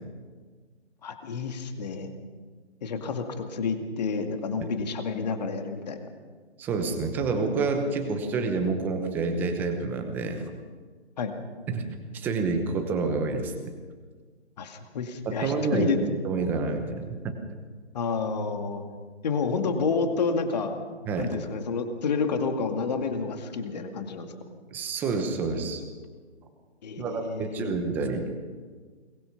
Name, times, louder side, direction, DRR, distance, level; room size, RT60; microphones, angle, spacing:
voice 1, 1.0-2.1 2.8-6.1 11.2-11.3 14.6-16.0 17.9-18.8 19.2-20.8 21.2-24.3 26.8-27.7, left 5 dB, 40° left, 5 dB, 2.2 m, -29 dB
voice 2, 6.6-10.5 11.7-11.9 12.1-13.5 15.2-15.9 16.2-17.4 21.1-21.4 24.7-25.8 27.0-28.3, right 4 dB, 5° right, 5 dB, 0.9 m, -28 dB
22.5 x 21.0 x 5.9 m, 1.5 s
figure-of-eight pair, 155°, 34 cm